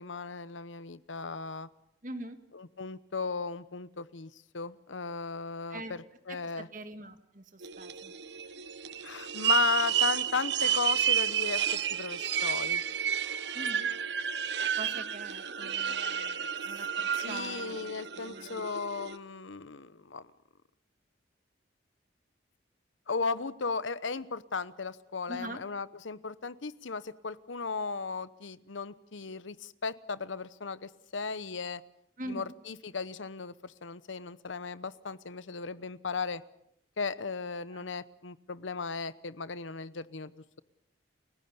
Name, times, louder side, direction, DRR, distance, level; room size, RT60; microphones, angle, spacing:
voice 1, 0.0-1.7 2.5-6.7 9.0-12.8 17.2-20.3 23.1-31.8 32.3-36.4 37.0-40.6, left 4 dB, 85° left, 16 dB, 0.9 m, -36 dB
voice 2, 2.0-2.4 5.7-6.0 6.3-8.1 13.5-13.9 14.8-18.7 25.3-25.6 32.2-32.5 37.7-37.8, right 1 dB, 45° right, 8 dB, 1.8 m, -43 dB
sound 1, 7.6-19.2, right 9 dB, 65° right, 0.9 m, -31 dB
29.5 x 16.0 x 7.0 m, 0.76 s
head